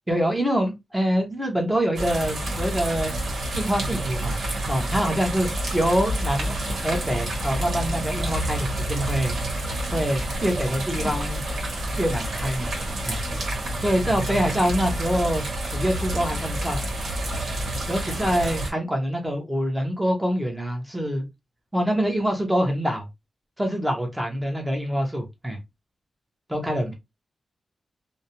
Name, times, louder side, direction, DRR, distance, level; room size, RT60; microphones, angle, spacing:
voice 1, 0.1-3.1 3.5-4.4 4.7-6.5 6.8-9.3 9.9-11.4 12.0-12.7 13.0-13.2 13.8-15.4 15.7-16.8 17.9-21.3 21.7-23.1 23.6-25.6 26.5-26.9, equal, 10° right, 0.8 m, -25 dB
sound 1, 2.0-18.7, right 1 dB, 75° right, 1.0 m, -28 dB
2.5 x 2.0 x 2.8 m
wide cardioid pair, 120°, 0 cm